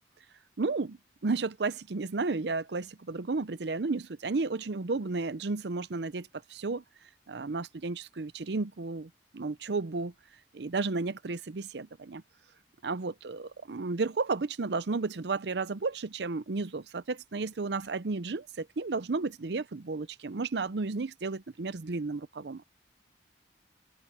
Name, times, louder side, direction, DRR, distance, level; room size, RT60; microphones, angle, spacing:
voice 1, 0.6-6.8 7.3-10.1 10.5-12.2 12.8-22.6, right 3 dB, 75° right, 0.6 m, -33 dB
open air
head